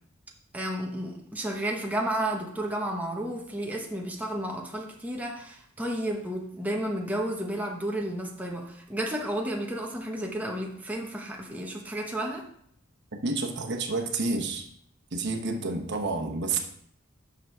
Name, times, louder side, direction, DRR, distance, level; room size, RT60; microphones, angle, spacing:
voice 1, 0.5-12.5, right 1 dB, 10° right, -1 dB, 0.9 m, -32 dB
voice 2, 13.2-14.7 15.1-16.6, right 3 dB, 55° right, 3 dB, 1.0 m, -29 dB
6.1 x 5.9 x 5.9 m, 0.68 s
head